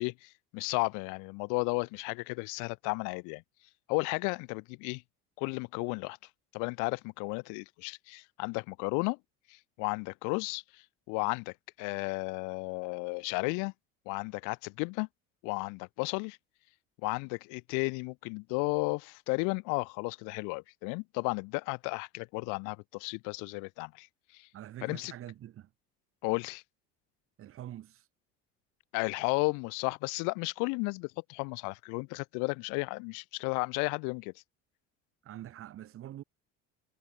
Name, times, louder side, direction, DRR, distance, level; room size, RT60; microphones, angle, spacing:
voice 1, 0.0-3.4 3.9-5.0 5.4-6.2 6.5-9.2 9.5-13.7 14.1-15.1 15.4-16.4 17.0-24.1 24.3-24.5 24.8-25.1 26.2-26.6 28.9-34.3, left 32 dB, 85° left, 1.3 m, -33 dB
voice 2, 24.5-25.7 27.4-28.1 35.2-36.2, right 12 dB, 45° right, 2.1 m, -45 dB
cardioid pair, 130°, 30 cm